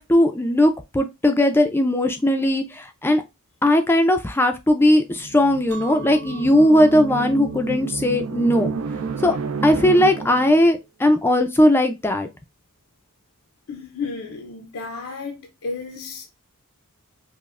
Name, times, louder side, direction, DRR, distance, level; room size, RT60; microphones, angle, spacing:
voice 1, 0.0-3.2 3.6-8.7 9.2-9.4 9.6-12.3, left 1 dB, 10° left, 0.3 m, -18 dB
sound 1, 5.1-10.6, right 4 dB, 65° right, 0.4 m, -30 dB
Chink clink, 5.7-10.9, right 3 dB, 90° right, 1.4 m, -42 dB
voice 2, 13.7-16.3, left 4 dB, 65° left, 0.5 m, -33 dB
5.1 x 2.1 x 2.4 m
head